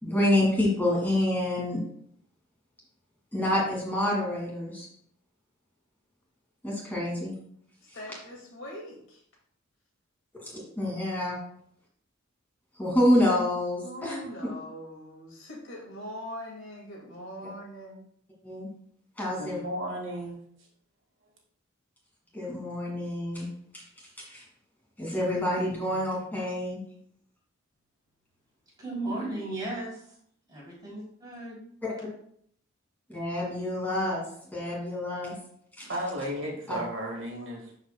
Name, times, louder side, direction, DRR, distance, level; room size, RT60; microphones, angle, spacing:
voice 1, 0.0-1.8 3.3-4.9 6.6-7.3 7.9-8.0 10.4-11.4 12.8-14.2 14.4-14.5 18.4-18.7 19.2-19.6 22.3-23.5 23.7-23.8 24.3-24.4 25.0-26.8 31.8-31.9 33.1-35.4 35.8-35.9 36.7-36.8, left 1 dB, 10° left, -4 dB, 2.3 m, -27 dB
voice 2, 7.9-9.2 13.8-18.0, equal, 65° left, -1 dB, 2.1 m, -42 dB
voice 3, 19.4-20.4 35.8-37.8, equal, 65° right, 0 dB, 1.8 m, -34 dB
voice 4, 28.8-30.0 30.5-31.7, right 2 dB, 20° right, -5 dB, 3.0 m, -35 dB
11.5 x 4.9 x 2.2 m, 0.66 s
head